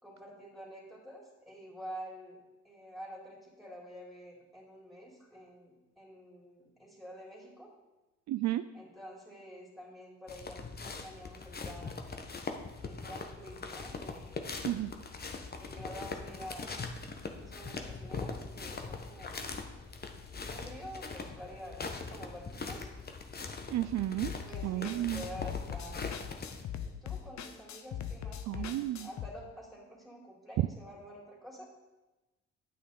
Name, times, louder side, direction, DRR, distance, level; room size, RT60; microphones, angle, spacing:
voice 1, 0.0-7.7 8.7-12.1 12.9-14.6 15.6-16.9 17.4-19.5 20.3-22.9 24.2-26.3 26.8-31.7, equal, ahead, -2 dB, 3.5 m, -48 dB
voice 2, 8.3-8.6 14.6-14.9 23.7-24.3 24.6-25.2 28.5-29.1, right 14 dB, 65° right, 11 dB, 0.4 m, -32 dB
sound 1, 10.3-26.6, left 4 dB, 30° left, 1.1 m, -41 dB
sound 2, 24.2-29.3, left 9 dB, 65° left, 0.8 m, -40 dB
9.3 x 8.6 x 4.0 m, 1.1 s
cardioid pair, 90°, 30 cm